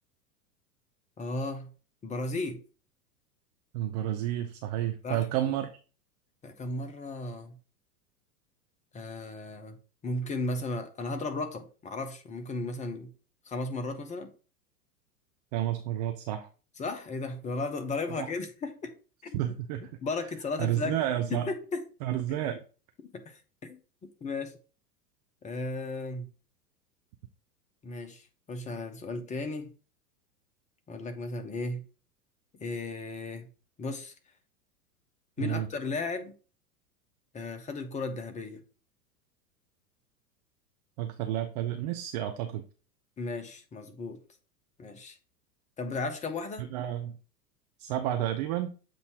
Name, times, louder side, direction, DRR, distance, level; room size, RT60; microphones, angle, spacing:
voice 1, 1.2-1.7 2.0-2.6 5.0-5.2 6.4-7.6 8.9-9.8 10.0-13.1 13.5-14.3 16.8-18.9 19.2-19.3 20.0-21.0 21.3-21.8 23.1-23.8 24.2-24.5 25.4-26.3 27.8-29.7 30.9-31.8 32.6-33.5 33.8-34.1 35.4-36.3 37.3-38.6 43.2-44.2 44.8-45.2 45.8-46.7, left 3 dB, 15° left, 0.8 m, -35 dB
voice 2, 3.7-5.7 15.5-16.5 18.2-18.3 19.3-19.8 20.6-21.5 22.0-22.6 35.4-35.7 41.0-42.6 46.6-47.1 47.8-48.7, right 12 dB, 30° right, 0.4 m, -30 dB
7.5 x 2.7 x 4.6 m
figure-of-eight pair, 95°, 47 cm